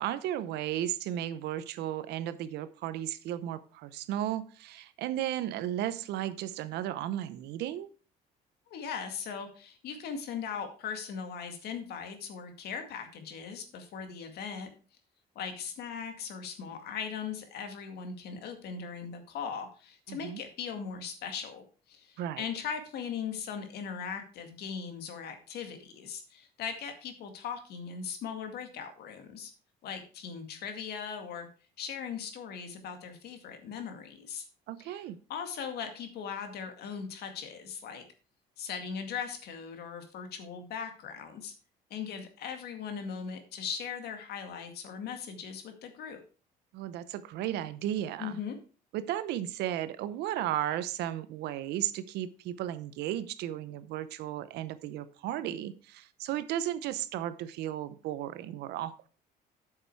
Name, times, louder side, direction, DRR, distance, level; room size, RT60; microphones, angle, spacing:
voice 1, 0.0-7.9 20.1-20.4 22.2-22.4 34.7-35.2 46.7-48.4 48.9-59.1, right 12 dB, 80° right, 14 dB, 0.8 m, -34 dB
voice 2, 8.7-14.7 15.4-29.5 29.8-31.5 31.8-34.5 34.8-35.0 35.3-38.0 38.6-41.5 41.9-46.2 48.2-48.6, left 6 dB, 70° left, 6 dB, 2.0 m, -39 dB
8.8 x 6.7 x 4.6 m, 0.37 s
cardioid pair, 110°, 17 cm